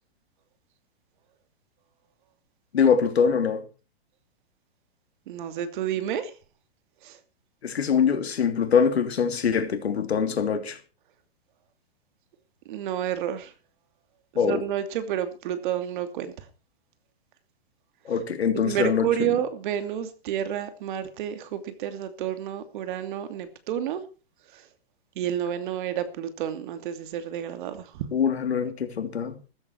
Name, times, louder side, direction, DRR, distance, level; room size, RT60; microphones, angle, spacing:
voice 1, 2.7-3.6 7.6-10.8 14.3-14.6 18.0-19.3 28.1-29.4, left 6 dB, 90° left, 3.1 m, -23 dB
voice 2, 5.3-6.3 7.0-7.2 12.7-13.5 14.5-16.3 18.5-24.0 24.5-24.6 25.2-28.1, right 10 dB, 50° right, 2.7 m, -30 dB
15.0 x 14.0 x 4.6 m
hypercardioid pair, 140°, 31 cm